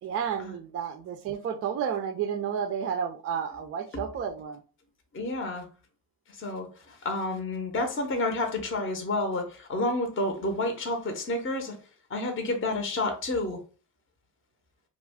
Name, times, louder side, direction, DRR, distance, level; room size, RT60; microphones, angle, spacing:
voice 1, 0.0-4.6, right 7 dB, 35° right, 0.4 m, -31 dB
voice 2, 5.1-5.7 6.4-11.8 12.1-13.6, left 2 dB, 25° left, 0.7 m, -30 dB
2.3 x 2.2 x 3.4 m
supercardioid pair, 75°, 46 cm